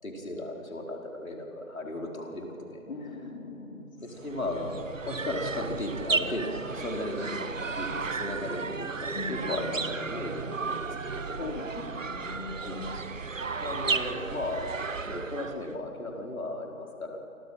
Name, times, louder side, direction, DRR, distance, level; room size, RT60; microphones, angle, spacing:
voice 1, 0.0-2.8 4.0-11.4 12.6-12.8 13.6-17.2, left 1 dB, 65° left, 0 dB, 5.0 m, -36 dB
voice 2, 2.9-3.9 4.2-4.3 9.1-9.6 11.4-12.9 14.0-14.1, left 3 dB, 50° left, -2 dB, 3.1 m, -40 dB
sound 1, 4.2-15.7, right 4 dB, 60° right, 1.1 m, -34 dB
28.5 x 24.0 x 5.9 m, 2.7 s
figure-of-eight pair, 160°, 44 cm